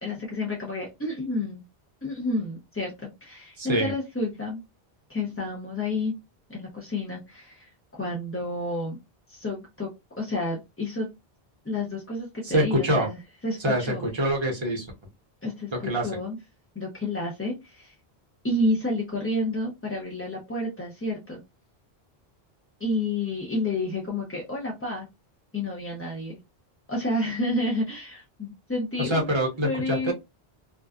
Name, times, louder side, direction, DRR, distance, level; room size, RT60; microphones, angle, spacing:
voice 1, 0.0-1.6 2.0-4.6 5.1-6.1 6.5-9.0 9.3-9.9 10.2-11.1 11.6-13.2 13.4-14.1 15.4-16.4 16.7-17.9 18.4-21.4 22.8-25.1 25.5-26.4 26.9-29.3 29.6-30.1, left 2 dB, 20° left, -2 dB, 0.4 m, -30 dB
voice 2, 3.6-3.9 12.4-13.1 13.6-14.9 15.7-16.1 29.0-30.1, equal, 30° right, -1 dB, 0.8 m, -25 dB
2.6 x 2.2 x 2.3 m, 0.22 s
omnidirectional pair, 1.1 m